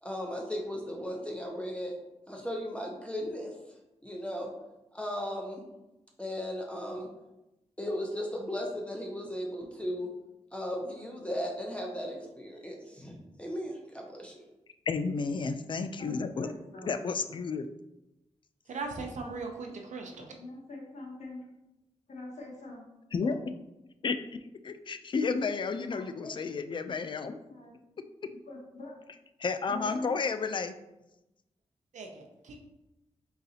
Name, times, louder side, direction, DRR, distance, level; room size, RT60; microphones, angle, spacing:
voice 1, 0.0-1.9 2.3-3.5 4.0-4.5 4.9-5.6 6.2-7.1 7.8-10.1 10.5-14.3, equal, 10° left, 0 dB, 0.7 m, -36 dB
voice 2, 14.9-16.5 16.8-17.7 23.1-23.4 24.0-27.3 29.4-30.7, left 4 dB, 40° left, 10 dB, 0.3 m, -32 dB
voice 3, 16.0-16.9 19.2-19.7 20.2-21.5 22.1-22.8 23.2-23.3 26.2-26.3 27.3-27.8 28.5-29.0 29.7-30.2, left 2 dB, 70° left, -1 dB, 1.2 m, -44 dB
voice 4, 18.7-20.3 31.9-32.6, right 3 dB, 80° right, 3 dB, 0.6 m, -39 dB
3.9 x 3.9 x 2.8 m, 0.94 s
cardioid pair, 80°, 12 cm